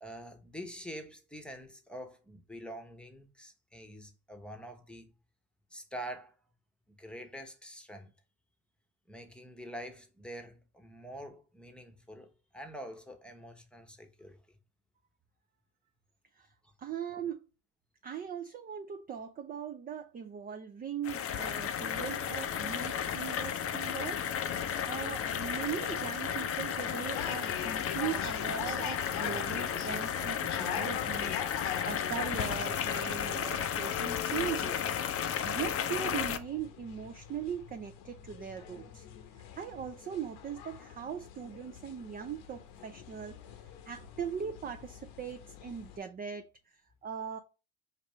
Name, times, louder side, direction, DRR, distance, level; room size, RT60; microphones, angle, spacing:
voice 1, 0.0-5.1 5.7-6.4 6.9-8.1 9.1-14.6 16.6-16.7, equal, ahead, 0.9 m, -46 dB
voice 2, 16.8-17.5 18.0-35.2 35.4-39.1 39.6-43.4 43.9-47.4, right 8 dB, 20° right, 0.4 m, -40 dB
sound 1, 21.0-36.4, left 8 dB, 30° left, 0.5 m, -33 dB
sound 2, 27.1-46.0, left 10 dB, 65° left, 0.9 m, -43 dB
5.2 x 2.6 x 3.1 m
hypercardioid pair, 70°, 44 cm